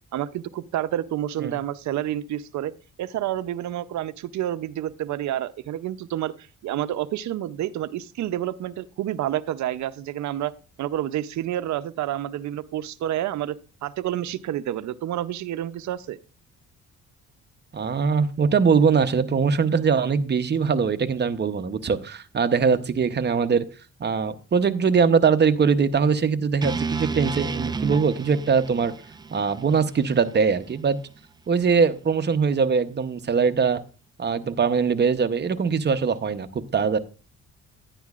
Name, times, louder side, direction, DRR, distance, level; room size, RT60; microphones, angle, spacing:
voice 1, 0.1-2.7 3.0-6.3 6.6-10.5 10.8-13.6 13.8-16.2, right 12 dB, 70° right, 14 dB, 0.6 m, -29 dB
voice 2, 17.7-23.6 24.0-28.9 29.3-31.0 31.5-33.8 34.2-37.0, right 5 dB, 35° right, 10 dB, 0.8 m, -22 dB
sound 1, 26.6-30.7, right 4 dB, 15° right, 0.3 m, -32 dB
10.5 x 10.0 x 2.4 m, 0.35 s
cardioid pair, 90°, 30 cm